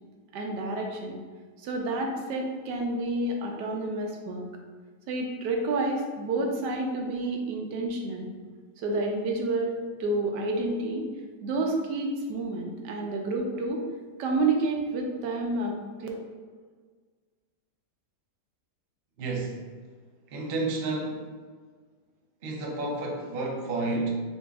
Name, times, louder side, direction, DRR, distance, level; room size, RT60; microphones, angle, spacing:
voice 1, 0.3-1.2 1.6-4.4 5.1-8.3 8.8-11.1 11.4-13.8 14.2-15.7 16.0-16.1, right 2 dB, 85° right, 1 dB, 1.2 m, -29 dB
voice 2, 19.2-19.7 20.3-21.3 22.4-24.1, right 2 dB, 60° right, -1 dB, 0.6 m, -30 dB
4.0 x 2.7 x 3.4 m, 1.5 s
omnidirectional pair, 1.8 m